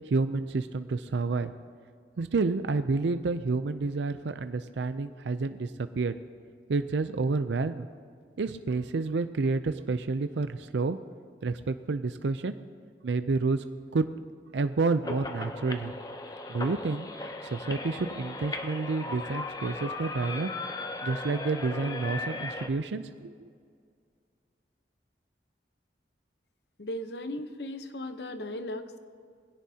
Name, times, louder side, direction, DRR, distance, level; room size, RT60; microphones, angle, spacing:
voice 1, 0.1-1.5 2.2-6.2 6.7-7.9 8.4-11.0 11.4-12.5 13.0-13.6 13.9-14.1 14.5-15.9 16.5-20.5 21.0-23.3, right 3 dB, 90° right, 10 dB, 0.5 m, -29 dB
sound 1, 15.0-22.7, left 2 dB, 20° left, 0.7 m, -37 dB
voice 2, 26.8-29.0, left 1 dB, 70° left, 9 dB, 0.9 m, -37 dB
21.0 x 16.5 x 2.8 m, 2.1 s
head